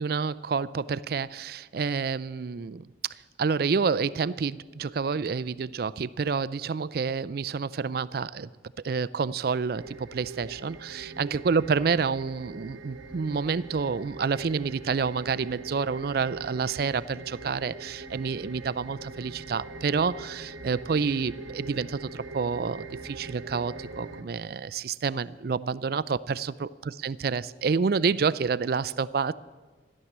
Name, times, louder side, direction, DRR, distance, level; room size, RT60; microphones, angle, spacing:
voice 1, 0.0-2.9 3.4-8.5 8.8-29.3, right 5 dB, 55° right, 0.4 m, -28 dB
sound 1, 9.7-24.2, right 3 dB, 85° right, 1.1 m, -42 dB
14.5 x 11.0 x 7.3 m
head